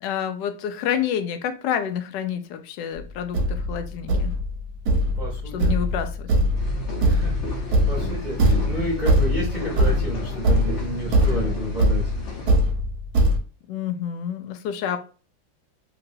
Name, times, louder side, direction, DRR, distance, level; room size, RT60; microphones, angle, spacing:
voice 1, 0.0-4.3 5.5-6.3 13.7-15.0, left 9 dB, 75° left, 8 dB, 1.1 m, -28 dB
Thump thud, 2.9-3.0 3.3-13.4, equal, 65° right, 1.0 m, -22 dB
voice 2, 5.2-5.7 7.0-12.0, equal, 40° right, -5 dB, 0.6 m, -31 dB
sound 1, 6.5-12.6, left 2 dB, 50° left, 0.9 m, -33 dB
3.0 x 2.9 x 2.7 m, 0.36 s
omnidirectional pair, 2.1 m